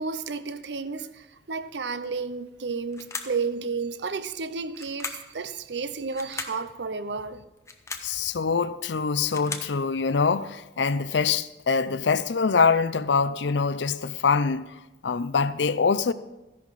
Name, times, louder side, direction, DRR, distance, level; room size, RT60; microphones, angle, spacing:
voice 1, 0.0-7.4, right 4 dB, 70° right, 0.7 m, -32 dB
sound 1, 2.9-3.4 4.7-5.3 6.1-6.6 7.6-8.1 9.0-9.8, left 4 dB, 15° left, 0.9 m, -37 dB
voice 2, 8.0-14.7 15.0-16.1, left 5 dB, 75° left, 0.6 m, -24 dB
14.5 x 11.0 x 4.1 m
head